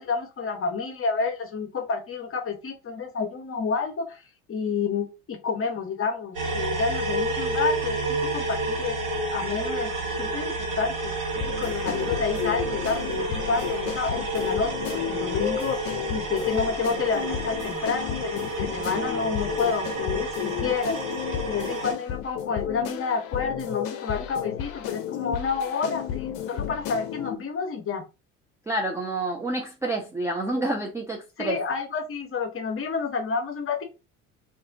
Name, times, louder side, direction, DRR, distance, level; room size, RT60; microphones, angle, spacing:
voice 1, 0.0-4.2 4.5-9.0 9.3-11.1 11.4-15.8 16.1-20.9 21.5-28.0 31.4-33.8, left 5 dB, 30° left, 0.9 m, -29 dB
sound 1, 6.3-21.9, right 2 dB, 70° right, 1.3 m, -30 dB
sound 2, 11.4-27.4, left 10 dB, 55° left, 0.6 m, -32 dB
voice 2, 28.7-31.6, right 1 dB, 5° right, 0.4 m, -28 dB
2.6 x 2.4 x 3.5 m
hypercardioid pair, 70°, 43 cm